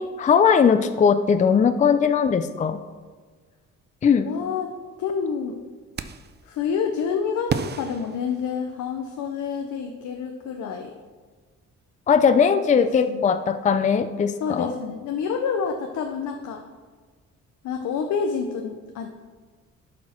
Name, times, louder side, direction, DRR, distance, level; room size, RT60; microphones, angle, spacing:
voice 1, 0.0-2.8 4.0-4.3 12.1-14.7, left 6 dB, 25° left, 10 dB, 0.4 m, -19 dB
voice 2, 4.2-5.5 6.4-10.9 12.8-13.4 14.4-16.6 17.6-19.1, left 6 dB, 75° left, 4 dB, 0.8 m, -28 dB
sound 1, 6.0-6.4 7.5-9.0, right 6 dB, 35° right, 0.5 m, -32 dB
11.5 x 4.3 x 4.4 m, 1.5 s
cardioid pair, 90°, 30 cm